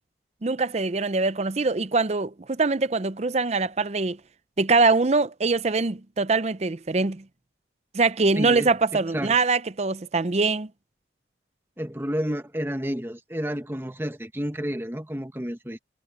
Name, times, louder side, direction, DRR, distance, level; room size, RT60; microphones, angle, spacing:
voice 1, 0.4-4.2 4.6-7.2 7.9-10.7, right 3 dB, 35° right, 0.6 m, -23 dB
voice 2, 8.4-9.4 11.8-15.8, equal, 15° right, 1.1 m, -31 dB
head